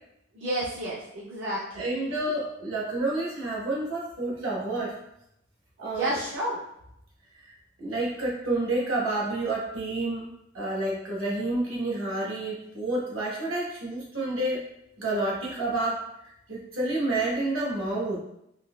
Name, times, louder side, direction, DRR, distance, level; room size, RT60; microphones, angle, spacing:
voice 1, 0.3-1.9 5.9-6.6, right 1 dB, 60° right, -8 dB, 0.6 m, -30 dB
voice 2, 1.7-4.9 5.8-6.2 7.4-7.5 7.8-10.3 10.5-14.6 15.0-16.0 16.5-18.2, right 2 dB, 80° right, -4 dB, 1.0 m, -29 dB
3.8 x 2.8 x 2.2 m, 0.80 s
head